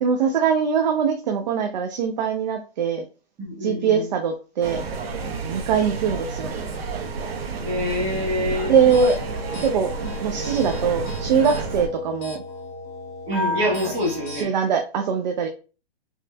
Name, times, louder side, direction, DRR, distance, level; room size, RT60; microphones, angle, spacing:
voice 1, 0.0-3.0 3.6-4.9 5.4-6.5 8.7-9.1 9.6-9.9 10.2-12.4 14.3-15.5, right 6 dB, 45° right, 0.6 m, -22 dB
voice 2, 3.4-4.1 7.6-8.7 13.2-14.5, left 1 dB, 20° right, 1.4 m, -26 dB
sound 1, 4.6-11.9, right 4 dB, 65° right, 1.0 m, -30 dB
sound 2, 8.9-14.4, left 2 dB, 40° left, 1.6 m, -34 dB
5.3 x 3.1 x 2.2 m
hypercardioid pair, 155°, 33 cm